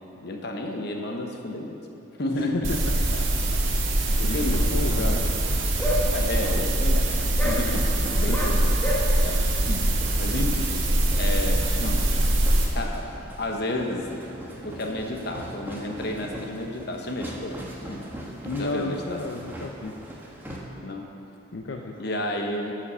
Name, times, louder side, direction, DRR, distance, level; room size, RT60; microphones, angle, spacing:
voice 1, 0.2-1.8 2.2-2.8 3.1-3.3 4.0-5.3 6.0-8.7 9.2-9.9 10.2-10.8 11.2-12.1 12.7-14.1 14.6-17.6 17.9-18.1 18.6-19.4 20.8-21.1 22.0-22.7, left 1 dB, 60° left, 2 dB, 1.1 m, -32 dB
voice 2, 2.4-2.8 4.2-5.2 8.3-8.4 18.4-20.0 21.5-22.0, left 2 dB, 80° left, 2 dB, 0.6 m, -32 dB
sound 1, 2.6-12.6, right 1 dB, 85° right, 1.7 m, -23 dB
sound 2, 3.2-20.6, right 1 dB, 10° right, 1.2 m, -41 dB
sound 3, 5.8-6.0 6.5-6.6 6.9-7.0 7.4-7.6 8.3-8.5 8.8-9.0, left 1 dB, 10° left, 1.3 m, -28 dB
11.0 x 5.7 x 6.9 m, 2.8 s
head